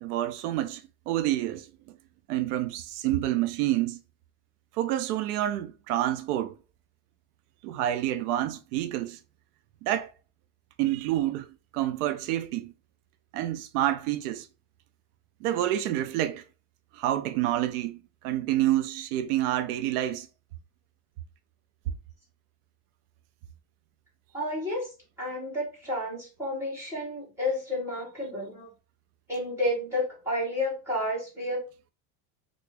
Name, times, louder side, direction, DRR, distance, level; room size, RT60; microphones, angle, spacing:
voice 1, 0.0-1.7 2.3-4.0 4.7-6.5 7.6-9.2 9.8-10.1 10.8-11.5 11.7-12.7 13.3-14.5 15.4-16.4 16.9-20.3, right 13 dB, 85° right, 0.5 m, -28 dB
voice 2, 24.3-24.9 25.2-28.7 29.3-31.6, left 1 dB, 5° right, 2.0 m, -31 dB
3.4 x 2.5 x 3.2 m
cardioid pair, 165°, 44 cm